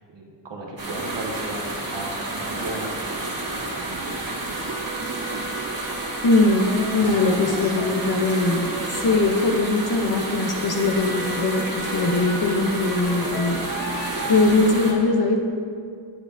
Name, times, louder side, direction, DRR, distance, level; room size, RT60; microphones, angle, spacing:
voice 1, 0.1-4.7 6.9-7.8, right 1 dB, 80° right, -2 dB, 1.2 m, -36 dB
sound 1, 0.8-14.9, right 2 dB, 55° right, 1.6 m, -30 dB
sound 2, 4.4-9.4 10.5-14.6, right 1 dB, 5° left, 1.7 m, -37 dB
voice 2, 6.2-15.4, left 3 dB, 60° left, 2 dB, 0.8 m, -21 dB
8.6 x 8.3 x 2.7 m, 2.2 s
cardioid pair, 50°, 42 cm